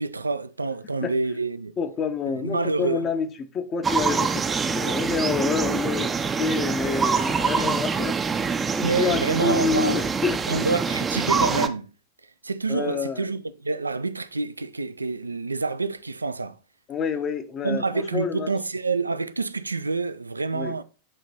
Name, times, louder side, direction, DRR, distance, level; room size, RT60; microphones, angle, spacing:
voice 1, 0.0-1.7 2.3-3.1 7.6-7.8 8.8-10.1 10.5-11.9 12.4-16.6 17.6-20.8, right 3 dB, 80° right, 0.3 m, -27 dB
voice 2, 1.8-3.3 3.5-10.4 12.7-13.3 16.9-18.5 20.5-20.7, left 5 dB, 30° left, 0.8 m, -28 dB
sound 1, 3.8-11.7, right 5 dB, 15° right, 0.5 m, -25 dB
8.7 x 3.0 x 4.0 m
figure-of-eight pair, 90°, 0 cm